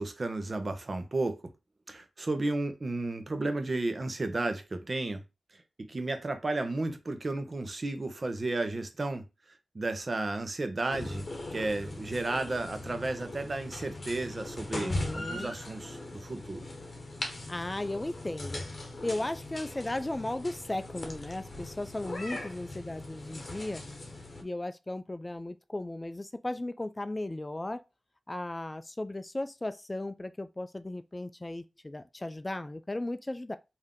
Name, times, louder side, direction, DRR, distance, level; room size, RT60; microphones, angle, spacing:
voice 1, 0.0-1.4 1.9-5.2 5.8-9.2 9.7-16.7, right 2 dB, 50° right, 0.8 m, -33 dB
sound 1, 10.9-24.4, left 2 dB, 50° left, 1.0 m, -40 dB
voice 2, 14.8-15.5 17.5-18.6 19.0-23.8 24.4-27.8 28.3-33.6, left 1 dB, 25° left, 0.3 m, -36 dB
3.5 x 2.7 x 3.6 m
cardioid pair, 50°, 0 cm